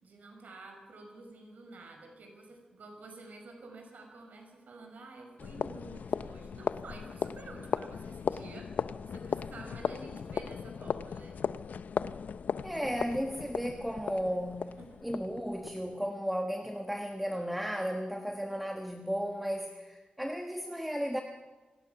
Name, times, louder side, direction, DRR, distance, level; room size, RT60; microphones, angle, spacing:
voice 1, 0.0-11.4 14.8-15.0, right 3 dB, 85° right, 3 dB, 5.1 m, -50 dB
sound 1, 5.4-16.0, left 6 dB, 85° left, 0.5 m, -37 dB
voice 2, 12.6-14.7 15.0-21.2, equal, 5° right, 4 dB, 1.3 m, -34 dB
27.0 x 18.5 x 5.8 m, 1.3 s
wide cardioid pair, 160°, 3 cm